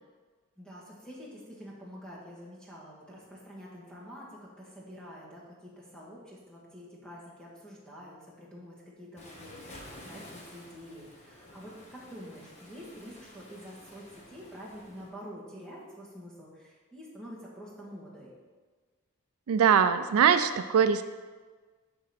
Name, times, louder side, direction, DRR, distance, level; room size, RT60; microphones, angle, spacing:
voice 1, 0.6-18.3, equal, 5° left, -6 dB, 1.7 m, -47 dB
Waves surf, 9.2-15.1, left 1 dB, 30° left, 1.2 m, -51 dB
voice 2, 19.5-21.0, right 7 dB, 75° right, 11 dB, 0.4 m, -22 dB
11.0 x 4.1 x 4.3 m, 1.4 s
head